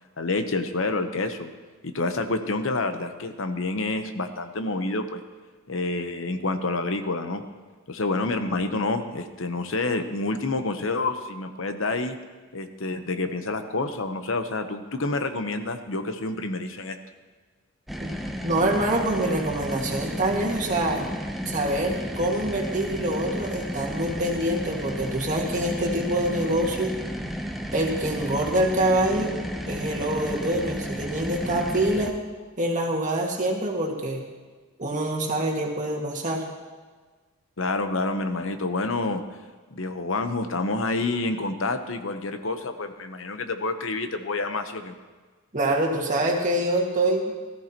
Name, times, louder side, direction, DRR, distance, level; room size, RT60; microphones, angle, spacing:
voice 1, 0.2-1.5 1.8-5.2 5.7-7.4 7.9-12.1 12.5-17.0 37.6-39.2 39.7-44.9, left 2 dB, 65° left, 8 dB, 0.9 m, -28 dB
sound 1, 17.9-32.1, equal, ahead, 0.8 m, -33 dB
voice 2, 18.4-21.1 21.4-26.9 27.7-29.3 29.7-32.1 32.6-34.2 34.8-36.4 45.5-47.3, right 1 dB, 35° right, -1 dB, 1.9 m, -25 dB
17.5 x 14.0 x 3.0 m, 1.4 s
head